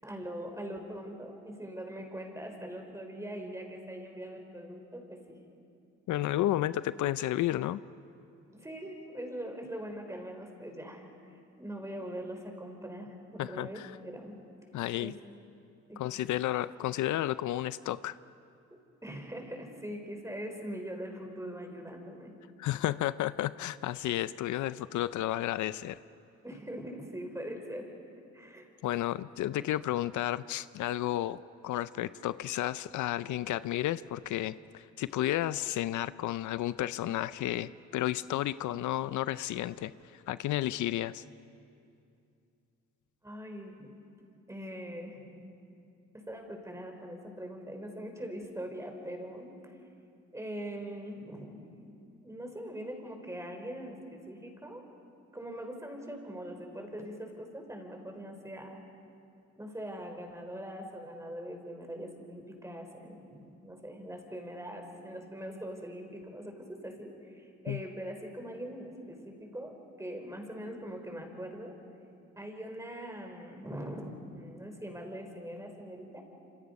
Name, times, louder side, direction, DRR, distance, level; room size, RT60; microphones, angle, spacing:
voice 1, 0.0-5.4 6.6-6.7 8.5-11.1 11.6-14.4 15.0-15.2 15.9-16.0 18.7-22.3 26.4-27.9 28.3-28.7 43.2-43.9 44.5-45.3 46.1-49.7 50.3-51.6 52.2-54.8 55.3-58.8 59.6-71.7 72.4-76.2, equal, 10° right, 3 dB, 4.5 m, -42 dB
voice 2, 6.1-7.8 13.4-13.9 14.7-15.1 16.0-18.2 22.6-26.0 28.8-41.2 67.7-67.8, left 14 dB, 75° left, 15 dB, 0.5 m, -32 dB
27.5 x 27.0 x 5.4 m, 2.5 s
cardioid pair, 90°, 30 cm